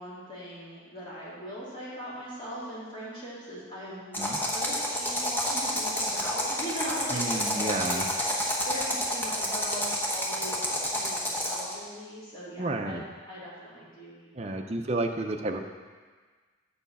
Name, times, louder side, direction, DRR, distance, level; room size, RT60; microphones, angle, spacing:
voice 1, 0.0-8.1 8.6-14.6, equal, 25° left, -9 dB, 2.9 m, -40 dB
sound 1, 4.1-11.7, equal, 10° left, 1.1 m, -29 dB
voice 2, 7.1-8.1 12.6-13.0 14.3-15.6, right 2 dB, 35° right, 4 dB, 0.6 m, -31 dB
7.2 x 7.0 x 5.4 m, 1.5 s
head